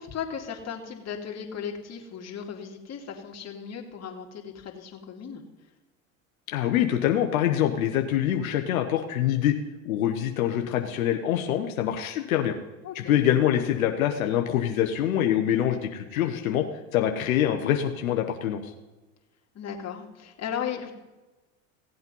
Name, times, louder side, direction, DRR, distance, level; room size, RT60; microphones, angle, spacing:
voice 1, 0.0-5.4 12.8-13.1 19.5-20.9, left 7 dB, 40° left, 2 dB, 2.5 m, -36 dB
voice 2, 6.5-9.6 9.8-12.5 12.9-16.6 16.9-18.7, left 11 dB, 85° left, 4 dB, 1.1 m, -25 dB
16.5 x 8.0 x 5.5 m, 1.1 s
hypercardioid pair, 90°, 40 cm